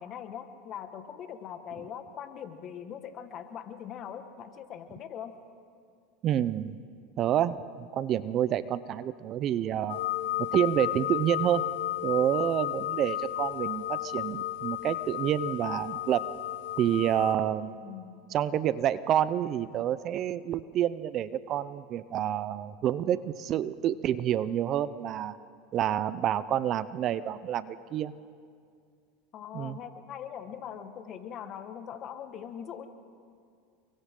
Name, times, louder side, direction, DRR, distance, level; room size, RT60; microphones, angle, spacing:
voice 1, 0.0-5.3 17.7-18.1 29.3-32.9, left 8 dB, 45° left, 8 dB, 1.7 m, -41 dB
voice 2, 6.2-6.8 7.2-10.0 10.4-11.6 12.0-16.3 16.8-17.7 18.3-25.4 25.7-28.1 29.5-29.8, right 11 dB, 45° right, 16 dB, 0.6 m, -28 dB
sound 1, 9.9-17.3, left 13 dB, 75° left, 1.1 m, -33 dB
29.5 x 23.5 x 3.9 m, 2.3 s
supercardioid pair, 110°, 0 cm